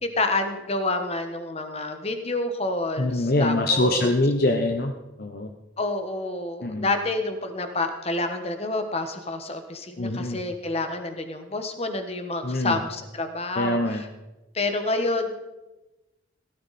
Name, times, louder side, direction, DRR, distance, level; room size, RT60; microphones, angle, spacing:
voice 1, 0.0-4.1 5.8-13.8 14.5-15.4, left 2 dB, 30° left, 7 dB, 1.3 m, -28 dB
voice 2, 3.0-4.9 5.2-5.5 6.6-6.9 10.0-10.4 12.4-12.8 13.6-14.0, left 2 dB, 50° left, 5 dB, 0.8 m, -24 dB
17.0 x 12.5 x 4.2 m, 1.0 s
head